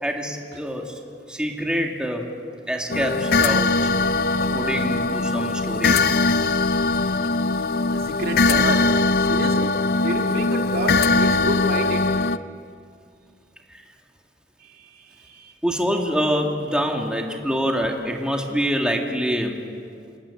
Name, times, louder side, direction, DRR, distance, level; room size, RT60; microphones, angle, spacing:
voice 1, 0.0-1.0 1.3-2.3 2.7-3.9 4.5-6.1 13.7-13.8 15.6-19.6, equal, 5° right, 1 dB, 2.3 m, -25 dB
sound 1, 2.9-12.4, left 3 dB, 60° left, 0.6 m, -21 dB
voice 2, 7.9-8.8 9.2-12.0 14.6-15.5, right 1 dB, 60° right, 3 dB, 2.2 m, -30 dB
27.0 x 19.0 x 8.6 m, 2.3 s
head